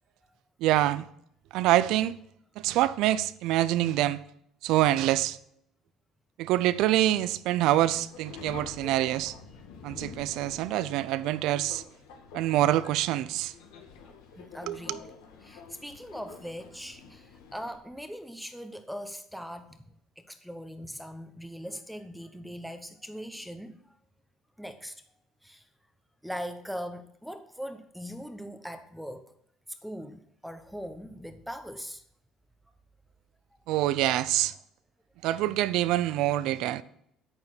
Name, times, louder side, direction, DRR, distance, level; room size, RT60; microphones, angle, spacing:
voice 1, 0.6-1.1 1.5-2.2 2.6-4.2 4.6-5.4 6.4-9.3 9.8-11.8 12.3-13.5 14.7-15.0 33.7-34.5 35.2-36.8, right 14 dB, 75° right, 0.6 m, -25 dB
Subway metro underground, 7.7-17.8, left 5 dB, 85° left, 1.9 m, -47 dB
voice 2, 14.3-15.0 15.4-19.8 20.2-24.0 24.6-25.0 25.4-25.7 26.2-29.3 29.8-32.0, equal, ahead, 1.0 m, -40 dB
9.6 x 8.9 x 6.1 m
cardioid pair, 105°, 0 cm